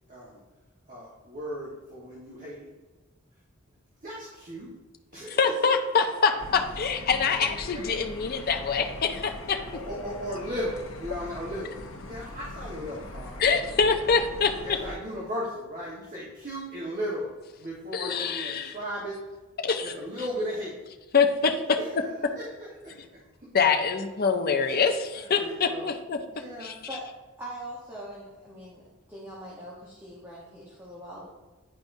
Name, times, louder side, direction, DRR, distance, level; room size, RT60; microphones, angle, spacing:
voice 1, 0.1-0.4 0.9-2.8 4.0-4.7 5.1-5.5 6.2-6.4 7.2-8.0 9.7-11.7 12.1-13.8 14.6-17.3 17.6-19.2 19.8-20.7 21.8-23.5 25.1-25.9 26.3-26.8, equal, 40° right, -7 dB, 1.5 m, -36 dB
voice 2, 5.3-9.6 13.4-14.5 17.9-18.7 19.6-19.9 21.1-21.8 23.5-26.2 26.6-26.7, left 5 dB, 45° left, 5 dB, 0.6 m, -25 dB
sound 1, 6.4-15.0, left 1 dB, 75° left, 0.8 m, -41 dB
voice 3, 27.4-28.8 29.1-31.4, right 1 dB, 10° right, -6 dB, 1.2 m, -42 dB
10.5 x 4.7 x 2.7 m, 1.2 s
head